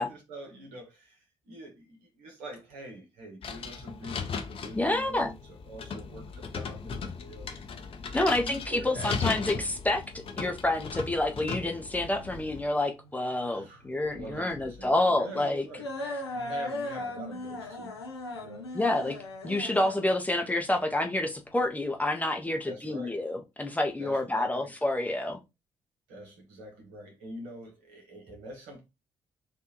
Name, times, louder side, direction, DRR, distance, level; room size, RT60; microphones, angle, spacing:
voice 1, 0.0-7.5 8.1-9.6 13.5-15.9 16.3-17.9 18.3-18.7 22.6-23.2 24.0-24.7 26.1-28.8, right 1 dB, 70° right, 1.5 m, -45 dB
sound 1, 3.4-12.6, left 5 dB, 45° left, 0.8 m, -37 dB
voice 2, 4.7-5.3 8.1-10.0 10.4-15.6 18.7-19.2 19.4-25.4, left 1 dB, 10° left, 0.8 m, -28 dB
sound 2, 12.0-22.0, left 2 dB, 85° left, 0.6 m, -39 dB
4.5 x 2.6 x 3.0 m
figure-of-eight pair, 40°, 13 cm